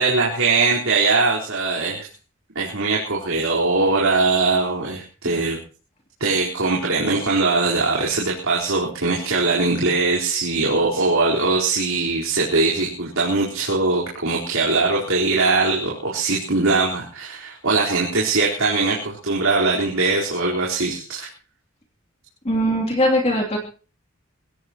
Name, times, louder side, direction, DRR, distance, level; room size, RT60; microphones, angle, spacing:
voice 1, 0.0-2.1 2.5-5.6 6.2-21.3, right 3 dB, 80° right, -4 dB, 4.3 m, -21 dB
voice 2, 22.4-23.6, equal, 30° left, 0 dB, 3.0 m, -20 dB
24.0 x 16.5 x 3.0 m, 0.37 s
head